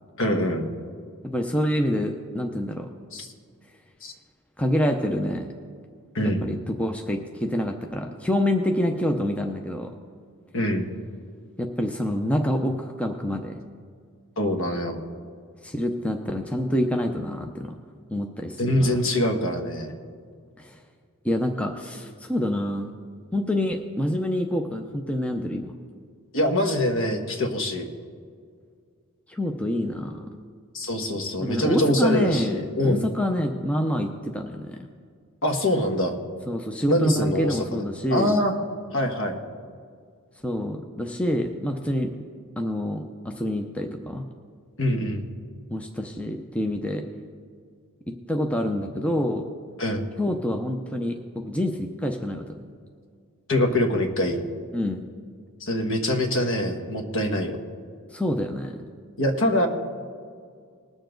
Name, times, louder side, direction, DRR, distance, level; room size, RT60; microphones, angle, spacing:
voice 1, 0.2-0.7 3.1-3.3 4.0-4.1 6.1-6.5 10.5-10.9 14.4-15.0 18.6-19.9 26.3-27.9 30.7-33.1 35.4-36.1 36.9-37.8 38.1-38.5 38.9-39.4 44.8-45.3 49.8-50.1 53.5-54.4 55.6-57.6 59.2-59.7, left 1 dB, 60° left, 4 dB, 1.3 m, -24 dB
voice 2, 1.2-2.9 4.6-5.5 6.4-9.9 11.6-13.6 15.6-17.7 18.1-19.0 20.6-20.8 21.2-22.9 23.3-25.7 29.3-30.3 31.4-34.8 36.5-38.4 40.4-42.1 42.6-44.3 45.7-47.0 48.3-49.4 50.2-52.6 54.7-55.0 58.1-58.8, left 1 dB, 5° left, 3 dB, 0.6 m, -27 dB
20.5 x 7.0 x 3.9 m, 2.1 s
head